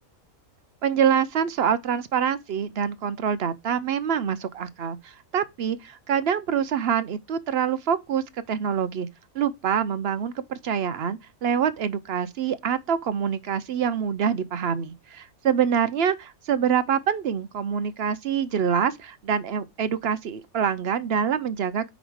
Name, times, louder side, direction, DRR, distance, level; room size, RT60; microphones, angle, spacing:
voice 1, 0.8-9.1 9.3-21.8, right 8 dB, 60° right, 0.7 m, -25 dB
5.1 x 4.9 x 6.1 m
omnidirectional pair, 1.5 m